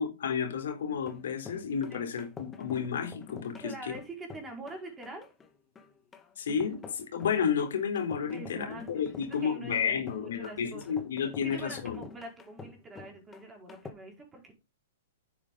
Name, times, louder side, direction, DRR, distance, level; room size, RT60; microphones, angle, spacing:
voice 1, 0.0-3.7 6.4-12.0, left 7 dB, 75° left, 3.6 m, -31 dB
sound 1, 0.9-13.9, left 5 dB, 15° left, 1.7 m, -48 dB
voice 2, 3.6-5.3 8.3-11.0 11.4-14.5, right 2 dB, 15° right, 5.0 m, -45 dB
9.7 x 7.9 x 3.9 m
hypercardioid pair, 135°, 0 cm